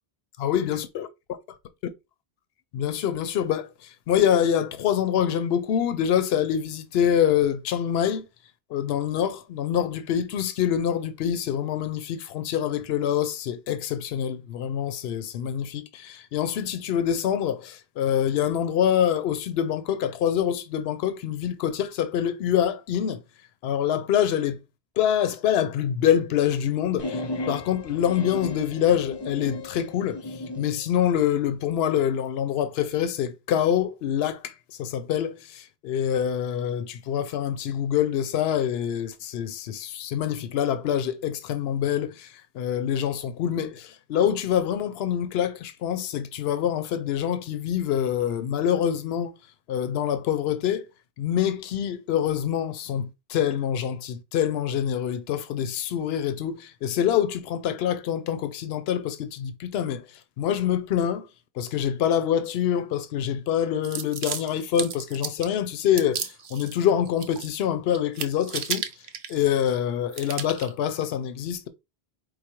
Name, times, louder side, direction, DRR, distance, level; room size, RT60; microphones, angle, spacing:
voice 1, 0.4-1.1 2.7-8.3 8.7-23.2 23.6-24.6 25.0-27.2 27.5-49.3 49.7-50.9 51.2-60.1 60.4-61.3 61.6-68.9 69.3-71.7, left 9 dB, 75° left, 0.8 m, -25 dB
sound 1, 27.0-30.7, left 2 dB, 35° left, 0.4 m, -35 dB
sound 2, 63.8-65.5 66.0-66.7 67.1-67.7 67.9-69.8 70.1-70.7, right 7 dB, 60° right, 0.8 m, -34 dB
4.7 x 2.1 x 4.3 m
omnidirectional pair, 1.1 m